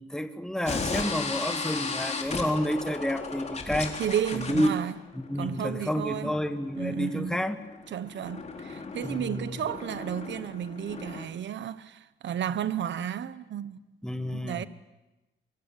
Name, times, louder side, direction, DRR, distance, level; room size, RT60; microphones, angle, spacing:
voice 1, 0.0-3.9 4.3-4.7 5.1-7.6 9.0-9.6 14.0-14.7, equal, 5° left, 1.7 m, -30 dB
sound 1, 0.6-11.3, left 4 dB, 35° left, 3.9 m, -36 dB
voice 2, 4.0-5.0 5.4-6.4 6.8-7.4 7.9-13.8 14.3-14.7, right 9 dB, 65° right, 1.1 m, -32 dB
24.0 x 23.5 x 8.9 m
cardioid pair, 110°, 20 cm